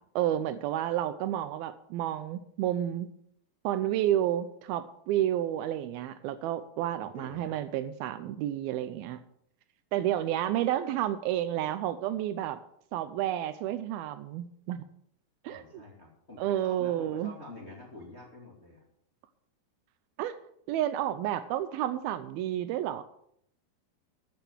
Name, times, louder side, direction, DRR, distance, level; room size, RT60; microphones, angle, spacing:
voice 1, 0.2-3.1 3.6-9.2 9.9-12.6 12.9-14.8 15.4-15.8 16.4-17.3 20.2-20.4 20.7-23.0, right 12 dB, 80° right, 12 dB, 2.4 m, -30 dB
voice 2, 7.0-7.6 15.5-18.8, left 2 dB, 20° left, -2 dB, 2.2 m, -47 dB
14.0 x 7.8 x 6.1 m, 0.71 s
omnidirectional pair, 4.5 m